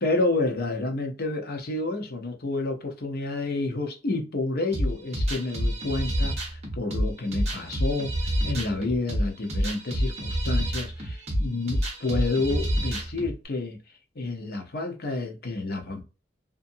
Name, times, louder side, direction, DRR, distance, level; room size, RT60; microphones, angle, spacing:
voice 1, 0.0-13.8 14.1-16.0, left 2 dB, 55° left, 0.8 m, -29 dB
sound 1, 4.7-13.3, equal, 35° right, 1.1 m, -28 dB
2.7 x 2.6 x 2.5 m
head